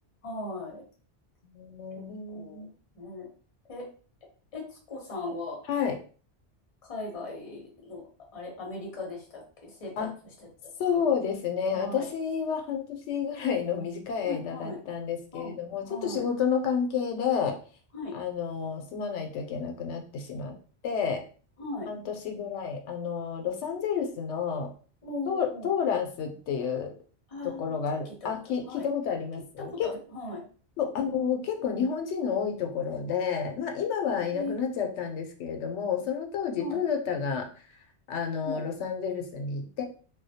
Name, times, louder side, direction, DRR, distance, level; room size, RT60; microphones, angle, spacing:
voice 1, 0.2-0.8 2.3-3.3 3.7-3.9 4.5-5.6 6.8-8.0 8.3-10.1 11.1-11.2 11.7-12.1 14.2-14.8 15.3-15.5 15.8-16.3 17.9-18.2 21.6-21.9 25.0-25.7 27.3-27.7 28.2-28.3 28.7-28.9 29.6-30.4 34.3-34.6 36.6-36.8 38.4-38.6, left 2 dB, 35° left, -2 dB, 0.8 m, -38 dB
voice 2, 1.4-2.7 5.7-6.0 10.0-10.1 10.8-17.6 18.1-20.5 20.8-21.2 21.9-24.7 25.3-26.9 27.4-29.9 30.8-37.5 38.1-39.8, left 7 dB, 85° left, 4 dB, 0.9 m, -30 dB
2.2 x 2.1 x 2.7 m, 0.40 s
omnidirectional pair, 1.2 m